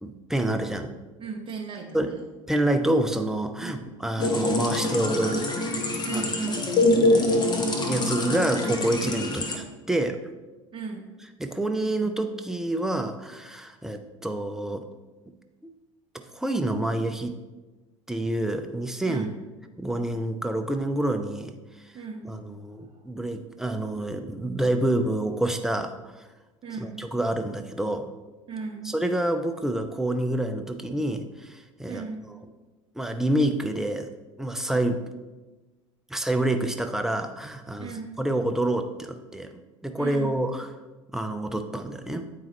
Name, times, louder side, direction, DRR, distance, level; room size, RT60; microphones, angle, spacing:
voice 1, 0.0-0.9 1.9-2.1 2.5-5.5 6.1-6.2 7.8-10.2 11.4-14.9 16.3-17.4 18.1-19.3 19.8-21.9 22.2-26.2 26.8-28.1 28.8-32.4 32.9-34.1 34.4-35.0 36.1-39.5 39.8-40.7 41.1-42.3, right 1 dB, 5° right, 6 dB, 0.5 m, -27 dB
voice 2, 1.2-2.2 3.6-3.9 6.0-6.7 10.7-11.1 19.0-19.3 21.9-22.4 22.9-23.0 26.6-27.0 28.5-28.9 31.9-32.2 37.8-38.2 40.0-40.4, right 5 dB, 30° right, 0 dB, 0.9 m, -36 dB
sound 1, 4.2-9.6, left 2 dB, 25° left, 1.0 m, -25 dB
8.5 x 4.7 x 3.2 m, 1.2 s
figure-of-eight pair, 65°, 17 cm